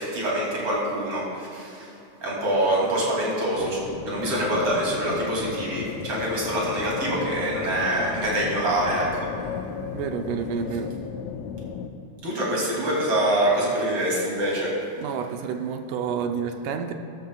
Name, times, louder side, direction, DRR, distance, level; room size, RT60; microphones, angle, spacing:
voice 1, 0.0-1.9 2.2-3.8 4.0-9.3 12.2-14.7, right 1 dB, 45° right, -4 dB, 3.5 m, -25 dB
sound 1, 3.6-11.9, left 7 dB, 80° left, 1.8 m, -34 dB
voice 2, 9.9-10.9 15.0-16.9, right 6 dB, 80° right, 5 dB, 2.2 m, -29 dB
15.0 x 13.5 x 2.3 m, 2.8 s
omnidirectional pair, 3.7 m